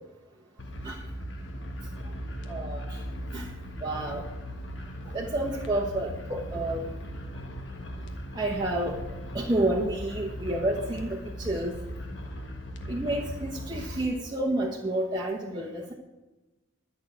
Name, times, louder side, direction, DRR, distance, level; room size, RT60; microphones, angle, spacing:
sound 1, 0.6-14.0, equal, 55° left, 1.4 m, -38 dB
voice 1, 2.5-3.0 3.3-3.5 3.8-4.3 5.1-6.9 8.3-9.0 9.3-11.7 12.9-15.9, right 1 dB, 20° right, -2 dB, 1.0 m, -30 dB
11.5 x 6.4 x 8.5 m, 1.1 s
head